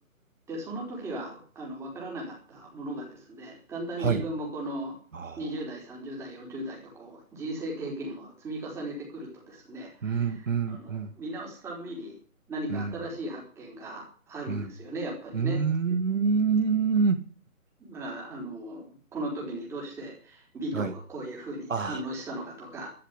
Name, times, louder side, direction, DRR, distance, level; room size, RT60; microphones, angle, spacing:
voice 1, 0.5-5.0 5.4-12.1 12.5-15.6 17.8-22.9, right 1 dB, 5° right, -2 dB, 3.9 m, -37 dB
voice 2, 5.1-5.4 10.0-11.1 12.7-12.9 14.5-14.7 15.3-17.2 20.7-20.9 21.7-22.0, right 5 dB, 60° right, 8 dB, 2.2 m, -26 dB
13.0 x 10.5 x 8.2 m, 0.41 s
figure-of-eight pair, 155°, 43 cm